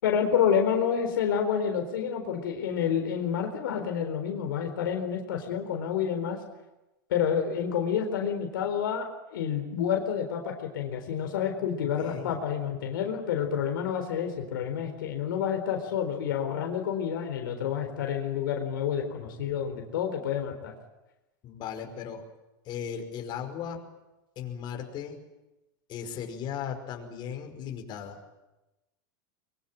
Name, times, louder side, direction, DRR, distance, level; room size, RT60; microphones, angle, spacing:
voice 1, 0.0-6.4 7.1-20.7, left 8 dB, 80° left, 4 dB, 4.2 m, -29 dB
voice 2, 12.0-12.4 21.4-22.2 22.7-23.8 24.4-25.2 25.9-28.2, left 8 dB, 45° left, 4 dB, 5.4 m, -37 dB
23.5 x 23.0 x 9.0 m, 1.0 s
hypercardioid pair, 110°, 11 cm